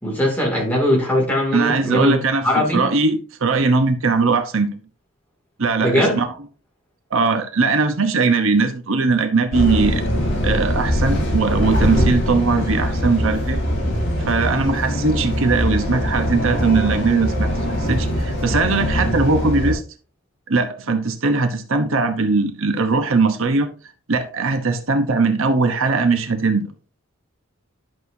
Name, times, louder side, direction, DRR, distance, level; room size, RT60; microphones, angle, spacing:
voice 1, 0.0-2.9 5.8-6.2, left 1 dB, 5° left, 2.5 m, -20 dB
voice 2, 1.5-4.8 5.6-6.3 7.1-10.0 10.4-13.6 14.2-17.5 17.8-19.8 20.5-23.7 24.1-26.7, right 3 dB, 65° right, 0.9 m, -20 dB
sound 1, 9.5-19.7, equal, 55° left, 3.1 m, -22 dB
10.5 x 6.3 x 2.7 m
head